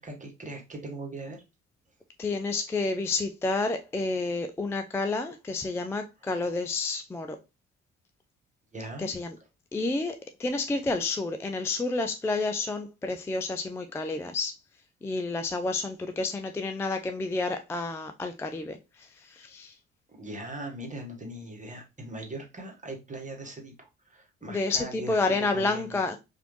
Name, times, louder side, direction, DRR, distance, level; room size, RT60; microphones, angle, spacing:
voice 1, 0.0-1.4 8.7-9.1 20.1-25.2 25.5-26.0, right 1 dB, 20° right, 1.5 m, -40 dB
voice 2, 2.2-7.4 9.0-9.4 9.7-14.6 15.0-19.8 24.5-26.2, left 3 dB, 10° left, 0.3 m, -30 dB
4.9 x 2.5 x 3.1 m
figure-of-eight pair, 45°, 35 cm